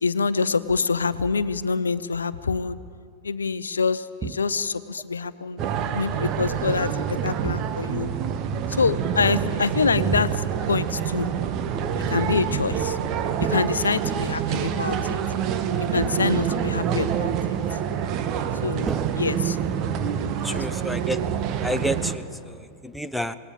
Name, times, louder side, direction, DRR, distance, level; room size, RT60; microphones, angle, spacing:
voice 1, 0.0-2.8 3.2-5.6 5.9-8.1 8.7-11.3 12.1-13.0 13.4-15.2 15.9-17.3 18.6-19.6 20.5-20.9, left 5 dB, 75° left, 16 dB, 0.8 m, -26 dB
sound 1, 4.2-4.8 7.4-8.1 10.1-10.8 13.4-14.3 16.0-16.6 18.8-19.9, right 6 dB, 20° right, 0.6 m, -35 dB
sound 2, 5.6-22.2, right 8 dB, 35° right, 1.4 m, -26 dB
voice 2, 20.4-21.2 21.6-22.5 22.8-23.4, equal, ahead, 10 dB, 0.9 m, -29 dB
26.5 x 19.0 x 7.3 m, 2.3 s
figure-of-eight pair, 90°, 0 cm